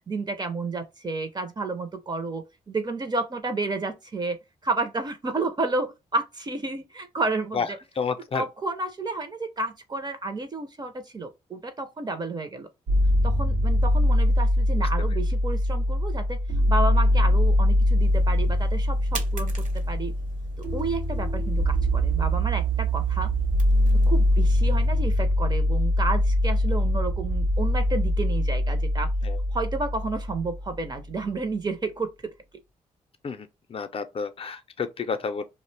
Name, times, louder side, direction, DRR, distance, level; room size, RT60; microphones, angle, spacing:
voice 1, 0.1-4.4 4.6-7.8 8.3-12.7 13.2-16.4 16.7-20.1 20.6-23.3 23.9-29.1 29.5-32.3, right 3 dB, 30° right, 0.5 m, -31 dB
voice 2, 8.0-8.4 29.2-29.4 33.2-35.4, left 5 dB, 40° left, 0.5 m, -30 dB
sound 1, 12.9-30.8, equal, 85° right, 0.7 m, -23 dB
sound 2, 18.0-24.9, right 4 dB, 65° right, 0.9 m, -44 dB
2.4 x 2.1 x 3.2 m
cardioid pair, 75°, 14 cm